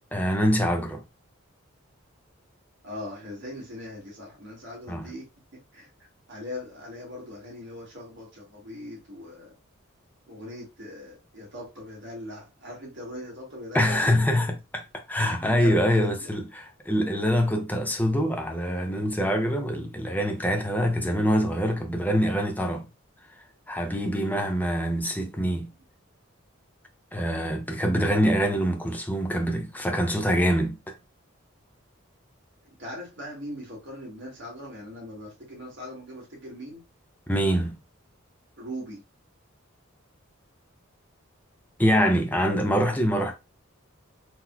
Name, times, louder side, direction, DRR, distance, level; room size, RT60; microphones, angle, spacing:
voice 1, 0.1-1.0 4.9-5.1 13.7-22.9 23.7-25.7 27.1-30.9 37.3-37.7 41.8-43.3, equal, 10° left, 0.5 m, -25 dB
voice 2, 2.8-5.3 5.5-5.9 6.3-9.5 10.3-14.2 15.4-16.3 32.6-36.8 38.6-39.0, left 1 dB, 55° right, 1.6 m, -40 dB
3.9 x 3.0 x 2.2 m
head